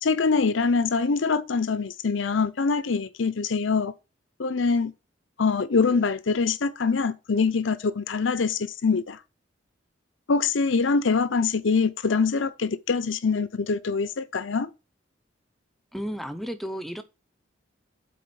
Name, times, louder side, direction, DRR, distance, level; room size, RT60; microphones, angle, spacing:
voice 1, 0.0-3.9 4.4-4.9 5.4-9.2 10.3-14.7, left 4 dB, 80° left, 0.6 m, -24 dB
voice 2, 15.9-17.0, equal, ahead, 0.8 m, -33 dB
8.6 x 4.1 x 6.9 m
head